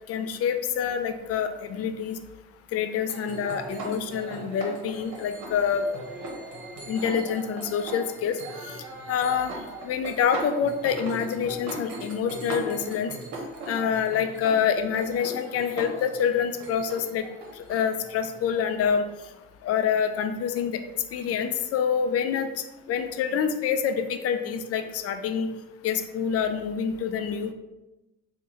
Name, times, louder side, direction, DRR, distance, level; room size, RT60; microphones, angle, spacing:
voice 1, 0.1-2.2 2.7-5.9 6.9-8.4 9.1-9.5 9.8-13.1 13.7-17.2 17.6-19.0 19.6-20.8 21.1-22.5 22.9-25.5 25.8-27.5, left 7 dB, 50° left, 8 dB, 0.4 m, -26 dB
sound 1, 3.1-19.4, right 2 dB, 65° right, 0.9 m, -39 dB
3.7 x 2.2 x 2.9 m, 0.99 s
hypercardioid pair, 60°, 30 cm